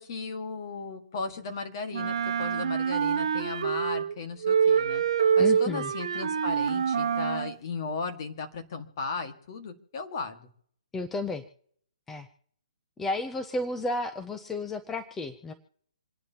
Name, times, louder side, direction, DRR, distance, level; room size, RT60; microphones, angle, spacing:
voice 1, 0.0-5.0 5.4-10.5, left 4 dB, 35° left, 6 dB, 1.6 m, -36 dB
Wind instrument woodwind instrument, 1.9-4.1 4.4-7.5, right 7 dB, 55° right, 1.0 m, -26 dB
voice 2, 5.4-5.9 10.9-11.4 12.1-12.3 13.0-15.5, left 2 dB, 5° left, 9 dB, 0.4 m, -32 dB
27.5 x 10.5 x 2.8 m, 0.67 s
hypercardioid pair, 165°, 4 cm